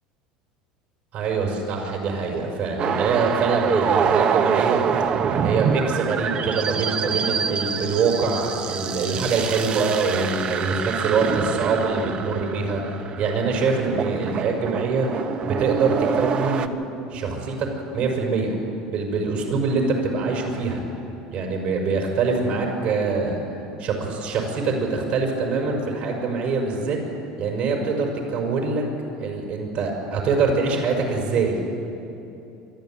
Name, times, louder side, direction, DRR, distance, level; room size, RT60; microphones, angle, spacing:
voice 1, 1.1-4.8 5.4-12.8 13.2-16.7 17.1-17.7 17.9-18.5 18.9-20.9 21.3-23.4 23.8-27.0 27.4-28.8 29.2-31.6, right 4 dB, 60° right, 0 dB, 5.7 m, -24 dB
sound 1, 2.8-16.7, right 6 dB, 45° right, 1.2 m, -25 dB
25.5 x 11.5 x 9.3 m, 2.9 s
supercardioid pair, 90°, 3 cm